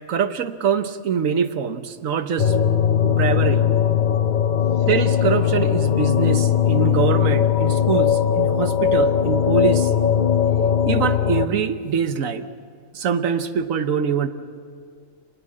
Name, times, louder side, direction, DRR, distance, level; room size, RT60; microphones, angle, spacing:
voice 1, 0.1-2.5 3.0-3.7 4.9-9.9 10.9-12.5 12.9-14.3, right 7 dB, 80° right, 10 dB, 1.4 m, -24 dB
sound 1, 2.4-11.5, left 8 dB, 40° left, 0.7 m, -19 dB
25.0 x 19.5 x 7.6 m, 2.2 s
omnidirectional pair, 1.4 m